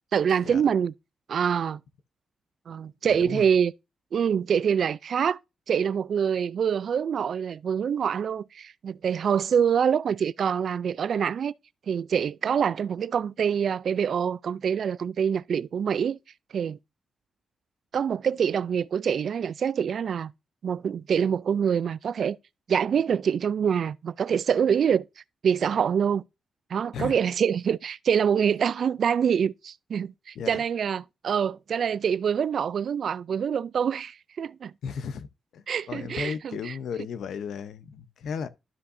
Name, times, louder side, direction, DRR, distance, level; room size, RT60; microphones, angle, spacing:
voice 1, 0.1-0.9 1.3-1.8 2.7-3.7 4.1-5.4 5.7-11.5 11.9-16.2 16.5-16.8 17.9-20.3 20.6-22.4 22.7-25.0 25.4-26.2 26.7-34.7 35.7-36.7, right 7 dB, 55° right, 0.3 m, -25 dB
voice 2, 3.1-3.5 26.9-27.1 30.4-30.6 34.8-35.3 35.5-38.5, left 6 dB, 80° left, 0.7 m, -35 dB
12.5 x 5.5 x 2.6 m
wide cardioid pair, 150°, 0 cm